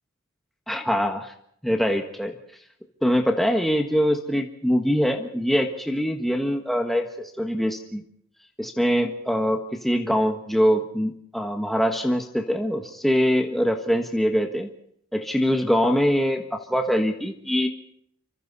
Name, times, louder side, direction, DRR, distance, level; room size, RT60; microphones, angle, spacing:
voice 1, 0.7-1.3 1.6-2.3 3.0-8.0 8.6-14.7 15.1-17.7, equal, ahead, 4 dB, 1.4 m, -23 dB
28.5 x 25.5 x 4.1 m, 0.69 s
head